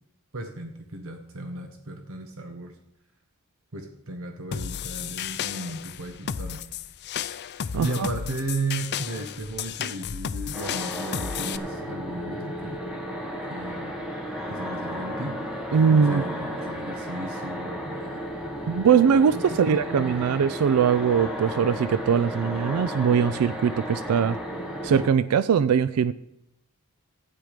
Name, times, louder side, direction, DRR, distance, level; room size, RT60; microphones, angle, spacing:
voice 1, 0.3-2.7 3.7-6.6 7.8-12.8 13.5-14.0 14.5-15.4 15.9-18.3 19.3-20.4, right 2 dB, 65° right, 5 dB, 1.1 m, -35 dB
sound 1, 4.5-11.6, left 8 dB, 50° left, 0.5 m, -33 dB
sound 2, 10.5-25.1, equal, 5° right, 1.6 m, -34 dB
voice 2, 15.7-16.2 18.7-24.4 24.8-26.1, right 7 dB, 85° right, 15 dB, 0.4 m, -21 dB
12.0 x 9.2 x 5.1 m, 0.84 s
head